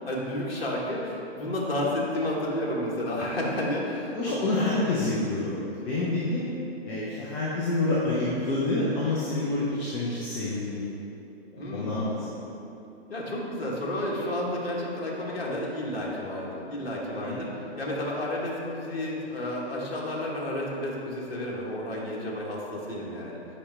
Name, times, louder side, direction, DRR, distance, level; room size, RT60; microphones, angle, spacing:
voice 1, 0.1-4.4 11.6-12.0 13.1-23.4, left 1 dB, 60° left, -4 dB, 1.5 m, -31 dB
voice 2, 4.1-6.4 6.8-10.9 11.5-12.5 17.2-17.5, left 2 dB, 20° left, -7 dB, 0.7 m, -28 dB
8.4 x 5.4 x 3.3 m, 2.9 s
figure-of-eight pair, 115°, 32 cm